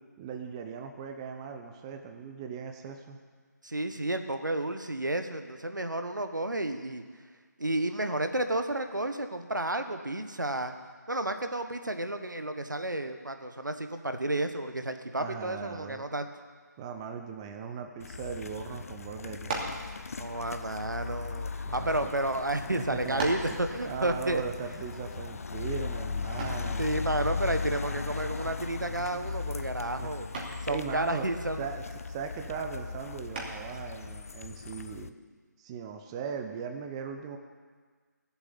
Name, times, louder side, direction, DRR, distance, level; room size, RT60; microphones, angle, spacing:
voice 1, 0.2-3.2 15.1-16.0 16.8-19.7 21.6-22.1 22.9-23.6 23.8-27.1 30.0-30.2 30.7-31.3 31.6-35.1 35.6-37.4, right 6 dB, 15° right, 5 dB, 0.7 m, -39 dB
voice 2, 3.6-7.0 7.6-10.7 11.1-16.3 20.2-24.4 26.6-30.3 30.6-31.7, right 1 dB, 85° right, 7 dB, 1.3 m, -31 dB
sound 1, 18.0-35.1, left 5 dB, 50° left, 0.6 m, -37 dB
sound 2, 19.4-19.9 20.8-22.0 22.6-22.7 23.2-23.6 26.4-26.7 28.6-29.0 29.4-29.7 30.3-30.7 33.3-33.8, right 3 dB, 35° right, 2.7 m, -36 dB
16.0 x 8.0 x 8.4 m, 1.5 s
figure-of-eight pair, 150°, 10 cm